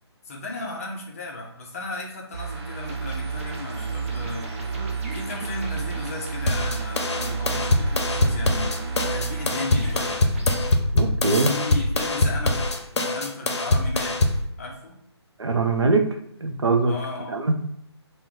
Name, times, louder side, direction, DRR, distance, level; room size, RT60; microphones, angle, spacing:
voice 1, 0.2-4.5 5.1-8.8 9.1-10.4 11.5-14.2 14.6-14.9 16.8-17.4, left 2 dB, 35° left, -1 dB, 0.7 m, -35 dB
sound 1, 2.3-11.0 11.4-11.5, right 5 dB, 65° right, 0.9 m, -32 dB
sound 2, 2.8-10.8, right 2 dB, 30° right, 0.5 m, -43 dB
sound 3, 6.5-14.5, left 2 dB, 75° left, 0.6 m, -23 dB
voice 2, 10.9-11.5 15.4-16.1 16.4-16.9 17.3-17.5, right 3 dB, 85° right, 4 dB, 0.6 m, -21 dB
2.9 x 2.1 x 3.5 m, 0.75 s
figure-of-eight pair, 150°, 14 cm